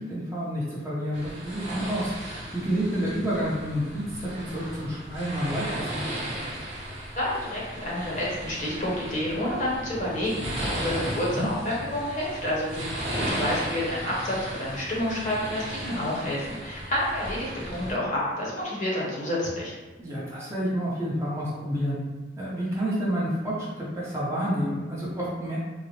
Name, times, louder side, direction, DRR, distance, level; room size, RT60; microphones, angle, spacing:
voice 1, 0.0-2.1 2.5-6.0 11.3-11.5 20.0-22.0 22.4-25.6, equal, 15° right, -8 dB, 0.8 m, -29 dB
sound 1, 1.1-17.9, right 1 dB, 35° right, 1.0 m, -35 dB
voice 2, 7.1-19.7, left 1 dB, 40° left, -6 dB, 0.9 m, -29 dB
3.8 x 2.0 x 3.1 m, 1.2 s
head